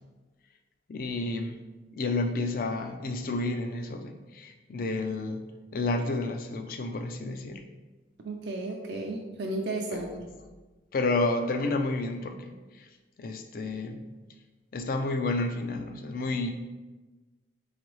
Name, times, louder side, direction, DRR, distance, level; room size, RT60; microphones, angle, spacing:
voice 1, 0.9-1.6 1.9-5.4 5.7-7.7 9.9-10.0 10.9-12.9 13.2-14.0 14.7-16.5, left 2 dB, 50° left, 6 dB, 0.4 m, -30 dB
voice 2, 8.2-10.3, right 2 dB, 65° right, 1 dB, 0.4 m, -34 dB
4.0 x 3.7 x 3.1 m, 1.2 s
head